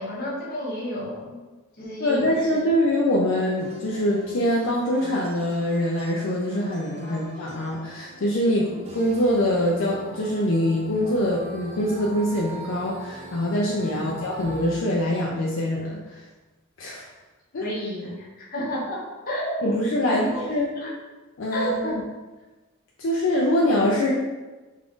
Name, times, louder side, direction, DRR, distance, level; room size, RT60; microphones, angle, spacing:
voice 1, 0.0-1.4 1.8-2.5 7.0-7.2 13.9-14.1 17.6-20.4 20.8-20.9 21.5-22.0, equal, 45° left, -5 dB, 0.9 m, -31 dB
voice 2, 2.0-16.2 16.8-17.1 17.5-17.7 19.6-20.7 21.4-22.0 23.0-24.1, left 1 dB, 65° left, -3 dB, 0.5 m, -24 dB
sound 1, 3.6-14.8, right 1 dB, 30° right, 0.5 m, -42 dB
3.6 x 2.5 x 3.6 m, 1.2 s
head